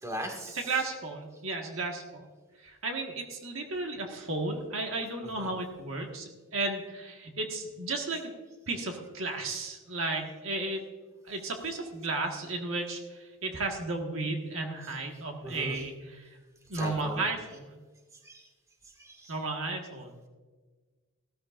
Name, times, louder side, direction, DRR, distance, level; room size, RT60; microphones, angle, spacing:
voice 1, 0.0-0.8 5.3-5.6 14.8-14.9 15.4-15.8 16.7-17.2 18.2-18.5 18.8-19.3, equal, 15° right, 0 dB, 1.9 m, -40 dB
voice 2, 0.5-2.2 2.6-8.3 8.7-10.8 11.2-16.3 16.7-17.8 19.3-20.2, right 3 dB, 70° right, 2 dB, 1.5 m, -34 dB
16.0 x 13.5 x 2.5 m, 1.4 s
head